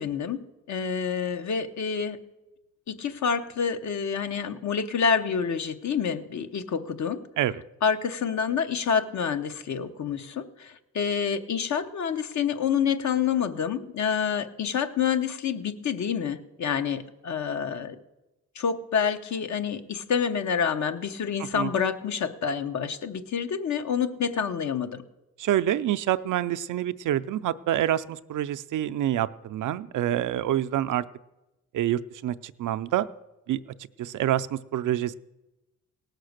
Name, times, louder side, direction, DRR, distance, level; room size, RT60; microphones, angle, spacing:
voice 1, 0.0-2.2 2.9-7.2 7.8-18.0 18.5-25.0, left 7 dB, 60° left, 9 dB, 0.9 m, -28 dB
voice 2, 25.4-31.0 31.7-33.1 33.5-33.6 34.0-35.1, right 12 dB, 75° right, 13 dB, 0.5 m, -27 dB
17.5 x 6.6 x 6.5 m, 1.0 s
cardioid pair, 85°, 31 cm